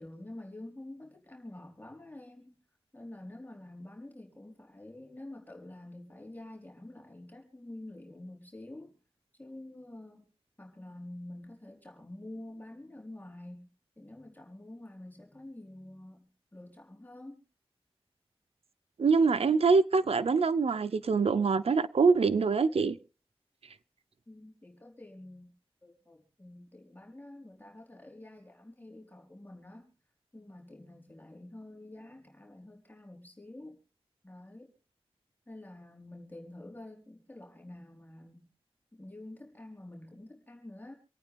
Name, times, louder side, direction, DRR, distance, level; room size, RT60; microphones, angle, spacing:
voice 1, 0.0-2.6 2.9-8.9 9.4-10.2 10.6-13.7 14.0-17.4 24.3-25.5 25.8-29.9 30.3-33.8 34.2-34.7 35.5-38.5 38.9-40.9, left 1 dB, 20° left, 4.4 m, -48 dB
voice 2, 19.0-23.0, right 4 dB, 90° right, 0.7 m, -24 dB
27.0 x 9.2 x 3.4 m
cardioid pair, 45°, 10 cm